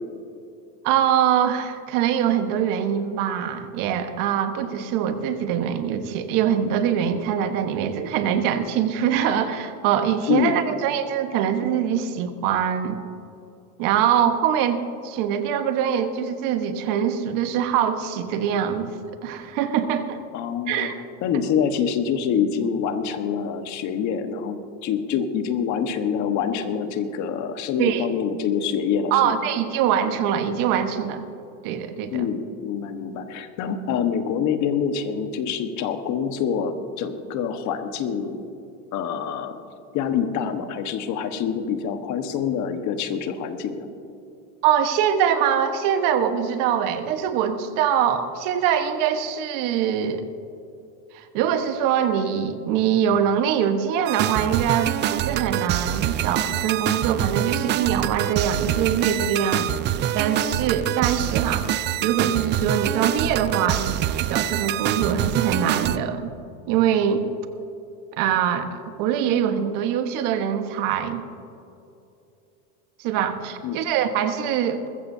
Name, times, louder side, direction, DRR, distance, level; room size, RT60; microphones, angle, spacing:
voice 1, 0.8-13.0 13.8-18.9 19.2-20.2 20.7-21.0 27.8-28.0 29.1-31.2 31.6-32.3 44.6-50.2 51.1-59.7 59.9-61.7 62.0-66.3 66.7-67.2 68.2-68.7 69.0-71.2 73.0-74.9, right 9 dB, 60° right, 7 dB, 1.4 m, -23 dB
voice 2, 10.3-10.6 20.3-20.9 21.2-29.4 32.1-38.4 38.9-39.6 39.9-43.9 73.6-73.8, left 7 dB, 50° left, 7 dB, 1.4 m, -26 dB
sound 1, 54.1-66.0, right 12 dB, 30° right, 0.4 m, -25 dB
21.0 x 15.0 x 2.8 m, 2.7 s
supercardioid pair, 125°, 37 cm